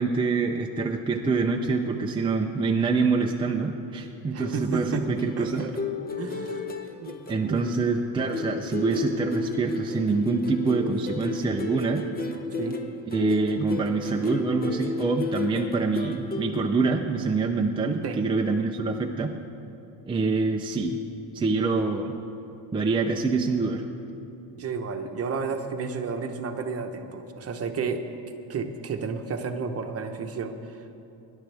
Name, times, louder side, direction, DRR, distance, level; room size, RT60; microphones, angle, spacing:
voice 1, 0.0-5.6 7.3-12.0 13.1-19.3 20.1-21.0 21.3-22.2 22.7-23.8, right 4 dB, 10° right, 1 dB, 0.5 m, -25 dB
voice 2, 4.3-5.0 5.4-5.7 6.2-7.1 7.4-7.7 12.6-12.8 18.0-18.2 24.5-28.2 28.5-31.0, right 5 dB, 35° right, 5 dB, 1.0 m, -32 dB
sound 1, 4.4-8.0 8.3-16.5, left 3 dB, 20° left, 0.9 m, -33 dB
23.5 x 11.0 x 3.4 m, 2.8 s
cardioid pair, 140°, 43 cm